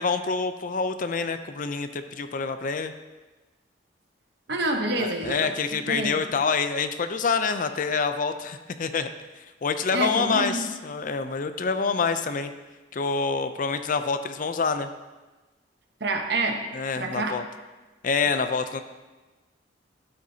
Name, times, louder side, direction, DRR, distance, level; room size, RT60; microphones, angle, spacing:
voice 1, 0.0-2.9 5.0-9.1 9.4-12.5 12.9-14.9 16.7-17.4 18.0-18.8, left 5 dB, 45° left, 9 dB, 0.4 m, -27 dB
voice 2, 4.5-5.5 5.8-6.2 9.9-10.7 16.0-16.6 16.9-17.4, right 2 dB, 60° right, 4 dB, 1.0 m, -27 dB
12.0 x 7.7 x 2.8 m, 1.2 s
head